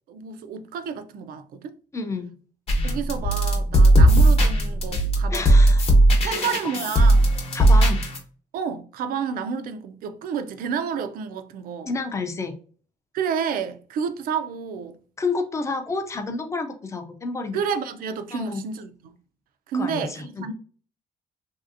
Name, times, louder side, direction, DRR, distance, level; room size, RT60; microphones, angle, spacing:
voice 1, 0.1-1.8 2.8-5.6 6.2-7.4 8.5-11.9 13.1-15.0 17.5-19.1 19.7-20.5, right 6 dB, 75° right, 0.4 m, -30 dB
voice 2, 1.9-2.3 5.3-6.7 7.5-8.0 11.9-12.6 15.2-17.6 18.3-18.6 19.7-20.5, left 3 dB, 20° left, 0.4 m, -30 dB
sound 1, 2.7-8.2, right 1 dB, 40° left, 0.8 m, -17 dB
3.2 x 2.7 x 2.5 m
cardioid pair, 165°, 15 cm